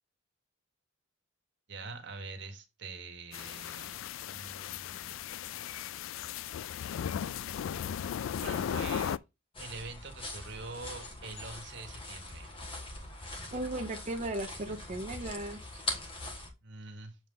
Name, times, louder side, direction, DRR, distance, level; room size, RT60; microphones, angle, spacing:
voice 1, 1.7-4.0 4.3-5.5 8.4-9.2 9.6-12.5 16.6-17.2, right 3 dB, 60° right, 1.5 m, -45 dB
sound 1, 3.3-9.2, left 8 dB, 70° left, 0.3 m, -36 dB
sound 2, 9.5-16.5, left 2 dB, 25° left, 1.5 m, -42 dB
voice 2, 13.5-15.8, right 2 dB, 35° right, 0.7 m, -36 dB
7.1 x 3.9 x 3.8 m
head